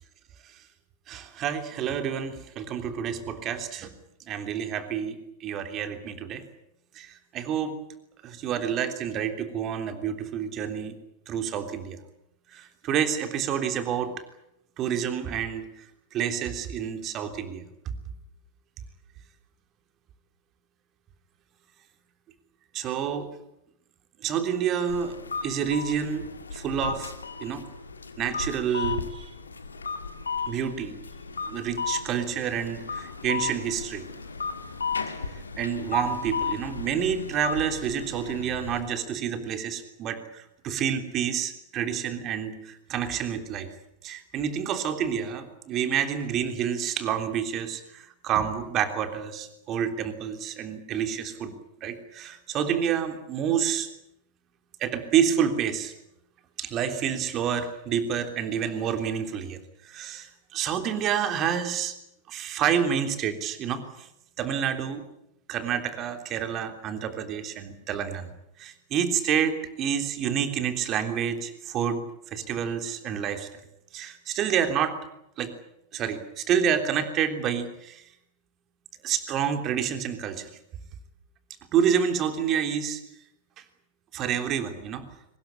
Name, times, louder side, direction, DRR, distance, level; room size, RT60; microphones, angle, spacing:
voice 1, 1.1-3.9 4.3-6.4 6.9-7.8 8.2-11.0 11.3-12.0 12.5-14.1 14.8-15.9 16.1-17.9 22.7-23.3 24.2-25.2 25.4-27.1 27.4-27.7 28.2-29.3 30.5-30.9 31.4-34.0 35.1-35.2 35.6-43.7 44.0-51.5 51.8-53.9 54.8-55.9 56.6-61.9 62.3-64.1 64.4-65.0 65.5-68.3 68.6-73.5 73.9-75.0 75.4-75.5 75.9-78.0 79.0-80.5 81.7-83.0 83.6-83.7 84.1-85.1, right 8 dB, 35° right, 7 dB, 3.3 m, -28 dB
sound 1, 24.9-38.8, left 5 dB, 75° left, 1.9 m, -34 dB
23.5 x 20.0 x 8.7 m, 0.80 s
figure-of-eight pair, 90°, 0 cm